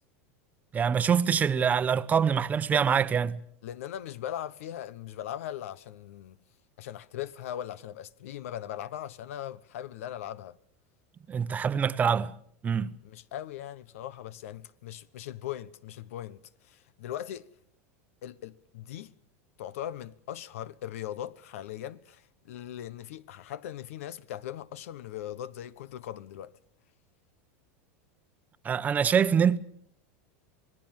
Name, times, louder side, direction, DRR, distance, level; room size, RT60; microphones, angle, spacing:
voice 1, 0.7-3.4 11.3-12.3 12.6-12.9 28.6-29.6, right 7 dB, 20° right, 0.9 m, -25 dB
voice 2, 3.6-6.4 6.8-10.6 13.0-17.5 18.2-19.1 19.6-26.5, left 11 dB, 80° left, 1.1 m, -39 dB
26.5 x 19.5 x 7.4 m
supercardioid pair, 140°, 7 cm